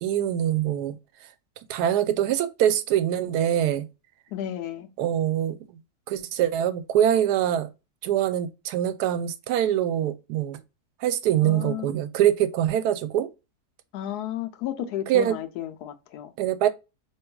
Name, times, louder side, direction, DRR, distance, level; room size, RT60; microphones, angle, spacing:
voice 1, 0.0-1.0 1.7-3.9 5.0-5.8 6.1-7.7 8.0-10.6 11.0-13.3 14.8-15.4 16.4-16.7, right 11 dB, 85° right, 1.1 m, -24 dB
voice 2, 4.3-4.9 11.4-11.9 13.9-16.3, left 11 dB, 90° left, 1.2 m, -33 dB
4.5 x 3.0 x 2.2 m
omnidirectional pair, 1.7 m